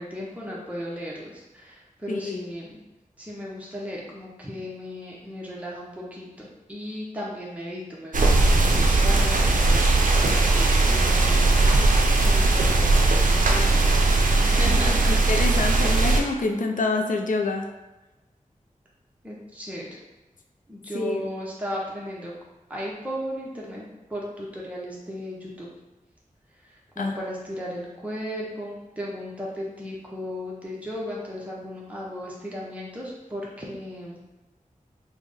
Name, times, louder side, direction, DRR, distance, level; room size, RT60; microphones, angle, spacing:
voice 1, 0.0-2.8 3.2-11.6 12.2-14.1 14.4-15.2 19.2-19.9 20.7-22.3 22.7-25.7 26.9-34.2, equal, 10° right, -5 dB, 0.7 m, -36 dB
voice 2, 2.1-2.5 14.6-17.7 20.9-21.3 27.0-27.2, left 3 dB, 65° left, 3 dB, 0.4 m, -27 dB
sound 1, 8.1-16.2, right 2 dB, 70° right, 0.4 m, -19 dB
3.4 x 2.1 x 3.4 m, 1.1 s
wide cardioid pair, 45°, 14 cm